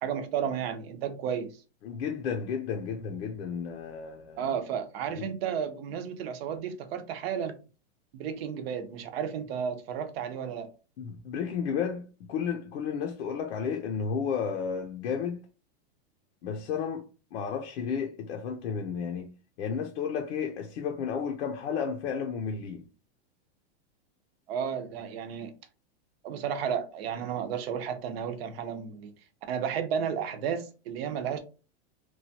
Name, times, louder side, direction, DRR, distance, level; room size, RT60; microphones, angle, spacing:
voice 1, 0.0-1.6 4.4-7.5 8.1-10.7 24.5-25.5 26.2-29.1 29.5-31.4, right 8 dB, 60° right, 0.7 m, -32 dB
voice 2, 1.8-4.5 5.2-5.3 11.0-15.4 16.4-19.3 19.6-22.8, left 6 dB, 75° left, 0.6 m, -32 dB
3.0 x 2.2 x 2.7 m
supercardioid pair, 150°, 34 cm